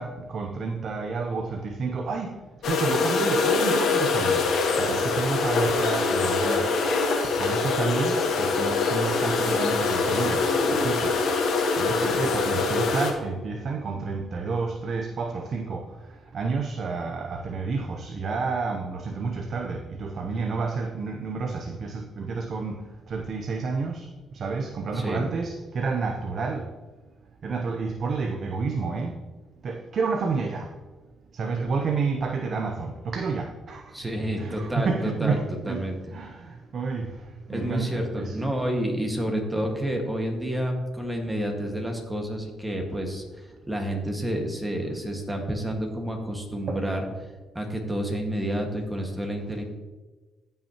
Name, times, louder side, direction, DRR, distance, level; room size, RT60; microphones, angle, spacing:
voice 1, 0.0-6.8 7.2-26.7 27.4-29.3 29.6-30.7 31.3-34.1 34.4-35.8 36.1-38.5 39.2-39.4 46.7-46.8, right 4 dB, 55° right, 3 dB, 0.7 m, -30 dB
sound 1, 2.6-13.1, left 4 dB, 70° left, 1.4 m, -24 dB
voice 2, 24.9-25.3 33.9-35.4 35.7-36.0 37.5-47.0 47.5-49.6, equal, 10° right, 2 dB, 1.7 m, -29 dB
14.5 x 5.6 x 3.0 m, 1.2 s
cardioid pair, 90°, 0 cm